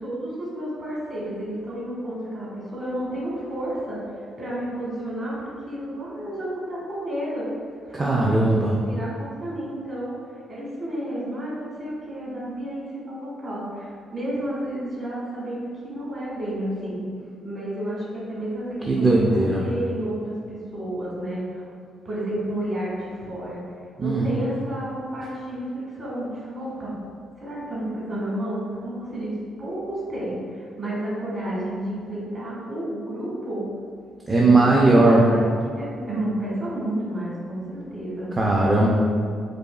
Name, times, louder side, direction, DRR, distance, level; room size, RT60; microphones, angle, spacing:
voice 1, 0.0-7.5 7.9-10.2 10.5-17.0 17.4-21.7 22.0-23.6 24.0-27.0 27.4-29.3 29.6-33.6 34.3-38.3, right 1 dB, 45° right, -7 dB, 1.5 m, -31 dB
voice 2, 7.9-8.7 18.9-19.6 24.0-24.3 34.3-35.2 38.4-38.9, right 2 dB, 25° right, -3 dB, 0.4 m, -18 dB
5.0 x 2.3 x 2.3 m, 2.2 s
cardioid pair, 90°, 0 cm